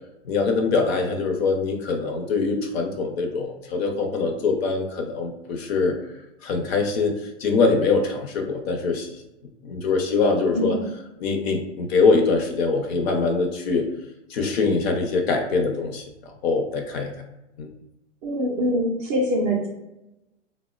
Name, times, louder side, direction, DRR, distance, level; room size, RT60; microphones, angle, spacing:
voice 1, 0.2-6.0 6.4-9.1 9.6-10.8 11.2-13.9 14.3-16.0 16.4-17.1 17.6-17.7, left 4 dB, 55° left, 3 dB, 0.6 m, -23 dB
voice 2, 18.2-19.7, equal, 25° right, -2 dB, 0.4 m, -23 dB
3.5 x 2.1 x 2.3 m, 0.96 s
hypercardioid pair, 135°, 37 cm